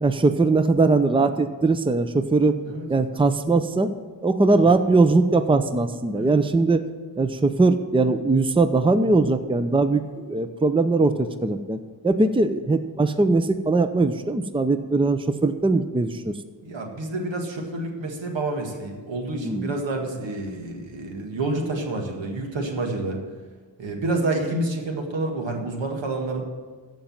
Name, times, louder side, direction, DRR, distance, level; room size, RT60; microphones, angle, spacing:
voice 1, 0.0-2.6 2.9-3.9 4.2-6.8 7.2-11.8 12.0-16.3 19.4-19.7, right 3 dB, 10° right, 10 dB, 0.7 m, -20 dB
voice 2, 16.6-23.2 23.8-26.4, right 2 dB, 85° right, 2 dB, 2.0 m, -28 dB
14.5 x 5.4 x 7.5 m, 1.4 s
cardioid pair, 65°, 44 cm